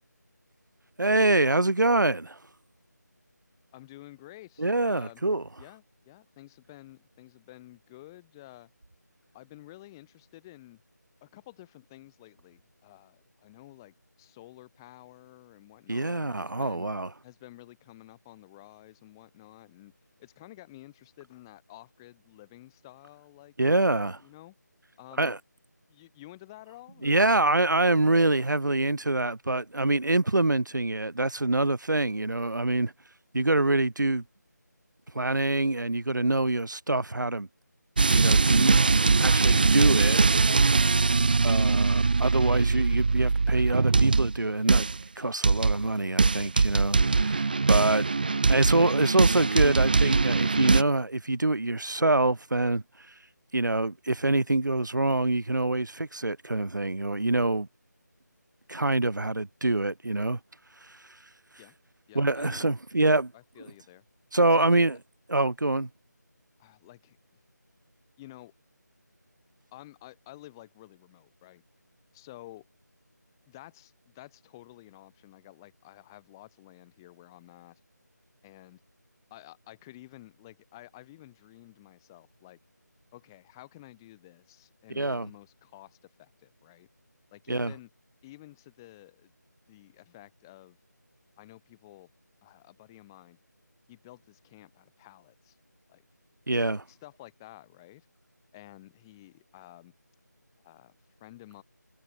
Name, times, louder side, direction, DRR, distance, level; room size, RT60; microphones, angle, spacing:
voice 1, 1.0-2.4 4.6-5.5 15.9-17.1 23.6-24.2 25.2-25.4 27.0-32.9 33.3-34.2 35.1-37.5 38.0-38.8 39.2-40.3 41.4-44.9 45.1-48.1 48.5-52.8 53.5-57.7 58.7-60.4 60.9-61.0 62.1-63.3 64.3-65.0 65.3-65.9 84.9-85.3 87.5-87.7 96.5-96.8, right 2 dB, 85° right, 1.6 m, -25 dB
voice 2, 3.7-5.2 5.6-8.7 9.3-10.8 11.2-16.9 17.2-19.9 20.2-23.5 24.2-24.5 25.0-25.3 25.9-27.1 47.2-47.5 61.6-61.8 62.1-62.7 63.3-64.0 64.5-64.8 66.6-67.2 68.2-68.5 69.7-71.6 72.1-72.7 73.5-77.8 78.4-78.8 79.3-82.6 83.1-86.9 87.3-87.9 88.2-89.3 89.7-90.8 91.4-92.1 92.4-93.4 93.9-95.6 95.9-96.0 96.5-98.1 98.5-99.9 100.6-100.9 101.2-101.6, left 16 dB, 10° left, 4.1 m, -51 dB
sound 1, 38.0-44.4 44.7-45.0 45.4-45.9 46.2-50.8, right 4 dB, 30° right, 0.5 m, -22 dB
figure-of-eight pair, 170°, 10 cm